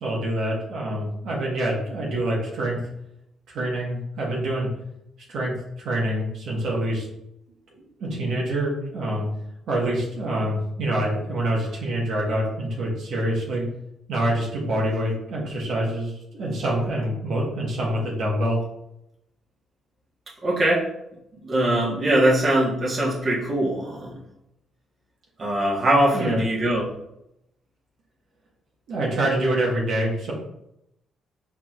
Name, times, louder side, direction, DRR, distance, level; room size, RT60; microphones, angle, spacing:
voice 1, 0.0-2.8 3.5-4.7 5.3-7.1 8.0-9.3 9.7-13.6 14.1-18.6 26.1-26.4 28.9-30.3, right 1 dB, 70° right, -4 dB, 1.3 m, -26 dB
voice 2, 20.4-20.8 21.4-24.2 25.4-26.9, right 1 dB, 40° right, -4 dB, 1.3 m, -21 dB
4.6 x 3.8 x 2.4 m, 0.81 s
cardioid pair, 90°, 0 cm